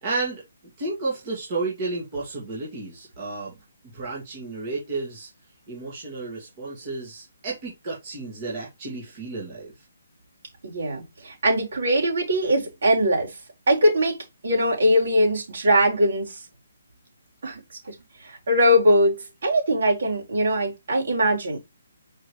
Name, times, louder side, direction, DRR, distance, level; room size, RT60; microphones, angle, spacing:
voice 1, 0.0-0.4 0.8-3.5 3.9-5.3 5.7-9.7, right 3 dB, 20° right, 2.0 m, -32 dB
voice 2, 10.6-13.3 13.7-14.2 14.4-16.4 17.4-17.6 17.9-18.0 18.2-19.2 19.4-21.6, equal, 50° right, 4.3 m, -21 dB
6.2 x 4.9 x 3.2 m
hypercardioid pair, 175°, 0 cm